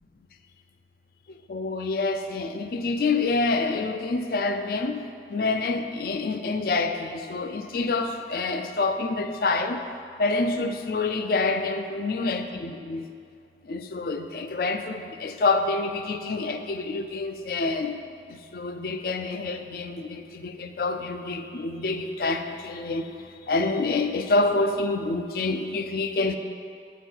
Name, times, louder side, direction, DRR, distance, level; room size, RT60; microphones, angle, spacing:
voice 1, 1.5-5.0 5.3-9.8 10.2-13.1 13.7-18.0 18.5-23.1 23.5-26.4, left 3 dB, 55° left, 7 dB, 0.4 m, -27 dB
8.1 x 4.2 x 4.6 m, 2.3 s
head